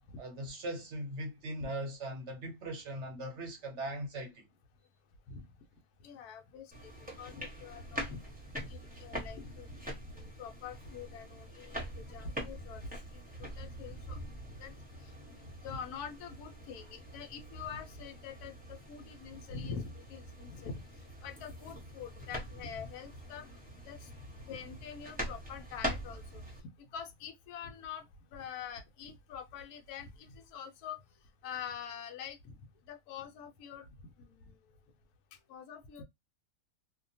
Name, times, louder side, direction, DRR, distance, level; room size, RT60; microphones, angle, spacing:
voice 1, 0.2-4.5, right 1 dB, 60° right, 0.8 m, -40 dB
voice 2, 6.0-6.9 7.2-8.2 8.6-14.2 14.6-14.7 15.3-20.8 21.2-23.5 23.9-24.1 24.5-26.4 26.9-28.0 28.3-31.0 31.4-32.6 32.9-33.9 34.2-34.4 35.5-36.0, left 6 dB, 80° left, 1.1 m, -45 dB
sound 1, 6.7-26.6, equal, 10° right, 0.7 m, -44 dB
2.8 x 2.2 x 2.6 m
omnidirectional pair, 1.6 m